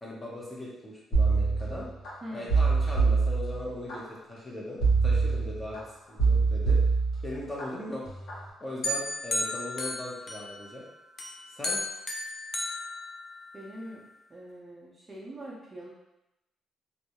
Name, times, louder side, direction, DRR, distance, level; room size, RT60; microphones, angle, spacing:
voice 1, 0.0-1.9 2.3-6.8 7.2-8.1 8.6-10.8 11.5-11.8, left 1 dB, 15° left, -5 dB, 0.7 m, -39 dB
sound 1, 1.1-2.1 2.5-4.0 4.8-5.8 6.2-7.6 8.1-8.4, right 4 dB, 75° left, 0.9 m, -24 dB
sound 2, 8.8-10.8 11.2-13.7, left 2 dB, 45° left, 0.4 m, -34 dB
voice 2, 13.5-14.0 14.3-15.9, equal, 25° right, -4 dB, 0.5 m, -43 dB
2.3 x 2.0 x 2.9 m, 0.91 s
cardioid pair, 90°, 0 cm